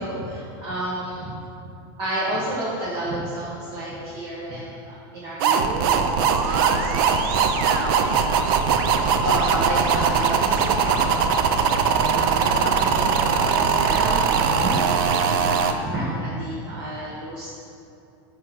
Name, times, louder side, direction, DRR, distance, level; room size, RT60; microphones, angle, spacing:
voice 1, 0.0-1.4 2.0-8.1 8.7-8.9 9.1-11.4 11.8-17.5, right 1 dB, 30° right, -8 dB, 1.7 m, -30 dB
sound 1, 5.4-15.7, right 6 dB, 65° right, 0.6 m, -21 dB
9.2 x 3.3 x 6.1 m, 2.7 s
supercardioid pair, 140°, 13 cm